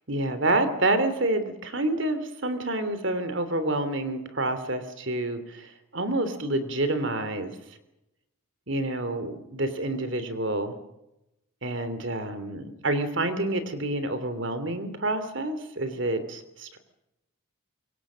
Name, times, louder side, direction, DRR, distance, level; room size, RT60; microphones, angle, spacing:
voice 1, 0.1-7.5 8.7-10.7 11.6-16.8, right 2 dB, 60° right, 10 dB, 3.1 m, -28 dB
25.5 x 23.0 x 6.4 m, 0.90 s
head